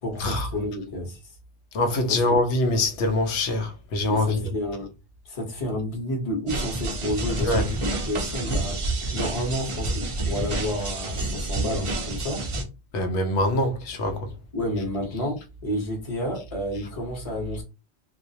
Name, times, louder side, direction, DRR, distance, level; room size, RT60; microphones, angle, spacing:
voice 1, 0.0-1.2 2.1-2.4 4.1-4.9 5.2-8.8 9.1-12.4 14.5-17.6, left 1 dB, 35° left, 0.8 m, -30 dB
voice 2, 1.7-4.4 7.4-7.6 12.9-14.3, left 2 dB, 90° left, 0.9 m, -24 dB
sound 1, 6.5-12.6, right 2 dB, 55° right, 0.3 m, -29 dB
2.3 x 2.0 x 2.7 m
omnidirectional pair, 1.1 m